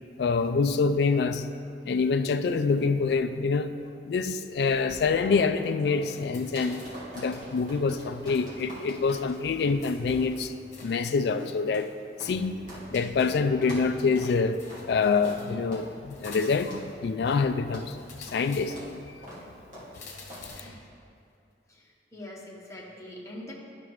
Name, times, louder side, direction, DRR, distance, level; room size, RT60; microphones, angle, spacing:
voice 1, 0.2-1.5 1.9-6.8 7.1-10.5 10.8-11.9 12.2-14.6 14.9-19.0, left 4 dB, 65° left, 8 dB, 0.3 m, -26 dB
sound 1, 4.6-12.9 13.2-13.3 13.6-13.9 14.2-14.3 14.7-14.9 15.2-15.4 15.7-15.9 16.2-16.4 16.7-16.9 17.3-17.4 17.7-17.9 18.3-18.4 18.7-18.9 19.2-19.4 19.7-19.9 20.3-20.5, equal, 45° right, 2.0 m, -44 dB
sound 2, 6.1-7.1 7.6-8.5 8.8-8.9 9.8-11.1 12.2-13.5 14.5-15.6 16.1-16.9 18.0-19.0 19.9-20.8, left 3 dB, 40° left, 1.2 m, -49 dB
voice 2, 21.7-23.5, left 1 dB, 15° left, -4 dB, 1.1 m, -44 dB
11.5 x 5.9 x 3.1 m, 2.4 s
head